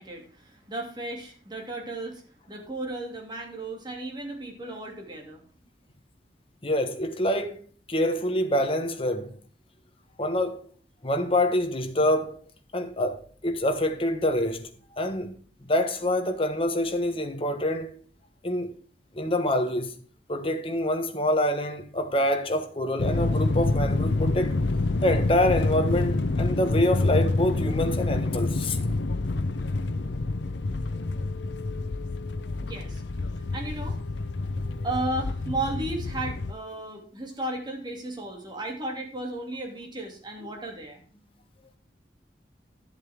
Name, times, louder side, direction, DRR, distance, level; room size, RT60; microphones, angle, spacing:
voice 1, 0.0-2.2 2.5-5.4 32.6-33.0 33.5-34.0 34.8-41.0, right 2 dB, 25° right, 2.6 m, -34 dB
voice 2, 6.6-7.6 7.9-9.3 10.2-10.7 11.0-12.4 12.7-15.3 15.6-18.0 18.4-18.7 19.1-19.9 20.3-24.6 25.0-28.8, left 1 dB, 30° left, 1.4 m, -26 dB
sound 1, 23.0-36.5, left 2 dB, 80° left, 0.7 m, -27 dB
11.5 x 7.8 x 3.6 m
head